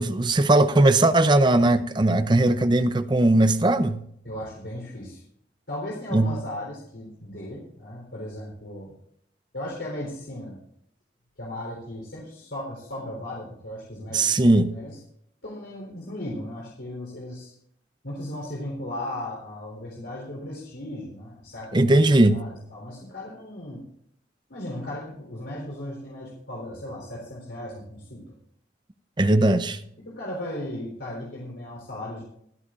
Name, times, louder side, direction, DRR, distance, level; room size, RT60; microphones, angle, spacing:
voice 1, 0.0-4.0 6.1-6.3 14.1-14.7 21.7-22.4 29.2-29.8, right 2 dB, 25° right, 0.6 m, -19 dB
voice 2, 4.2-5.2 5.7-8.9 9.5-10.6 11.4-14.4 14.7-15.0 15.4-17.5 18.0-21.9 22.3-23.9 24.5-28.3 30.0-32.2, left 1 dB, 85° left, 3.7 m, -36 dB
25.5 x 8.5 x 2.5 m
head